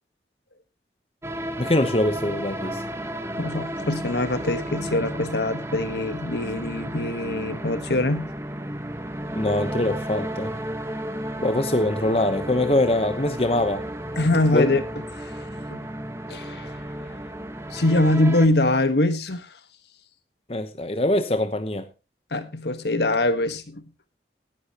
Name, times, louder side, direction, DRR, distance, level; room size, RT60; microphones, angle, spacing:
sound 1, 1.2-18.5, right 1 dB, 15° right, 1.2 m, -33 dB
voice 1, 1.6-2.8 9.3-10.5 11.4-13.9 14.5-14.7 20.5-21.9, left 1 dB, 35° left, 1.0 m, -23 dB
voice 2, 3.3-8.3 14.1-14.8 15.2-15.3 15.7-15.9 16.3-16.7 17.7-19.5 22.3-23.8, left 2 dB, 70° left, 1.4 m, -23 dB
18.5 x 10.0 x 3.0 m
head